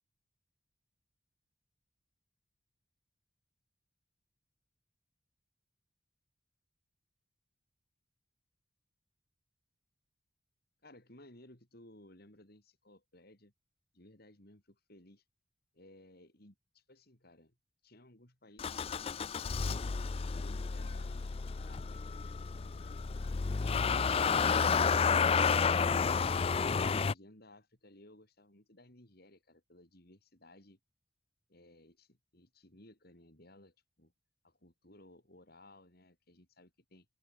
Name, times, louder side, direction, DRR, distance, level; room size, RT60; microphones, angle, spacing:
voice 1, 10.8-13.5 13.9-15.2 15.7-17.6 17.8-19.6 20.2-25.8 26.6-30.8 31.5-34.1 34.4-37.1, left 1 dB, 50° left, 4.1 m, -59 dB
Motor vehicle (road) / Engine starting, 18.6-27.1, left 5 dB, 30° left, 0.3 m, -31 dB
open air
head